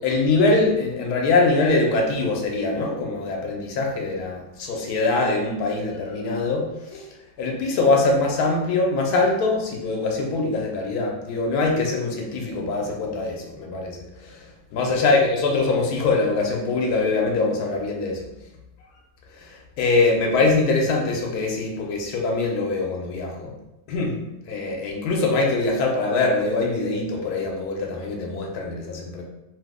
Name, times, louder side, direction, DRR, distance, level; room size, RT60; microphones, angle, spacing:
voice 1, 0.0-7.0 7.4-14.0 14.7-18.3 19.4-19.5 19.8-23.5 23.9-24.2 24.5-29.2, left 3 dB, 90° left, 0 dB, 1.1 m, -23 dB
2.9 x 2.0 x 3.5 m, 0.92 s
omnidirectional pair, 1.6 m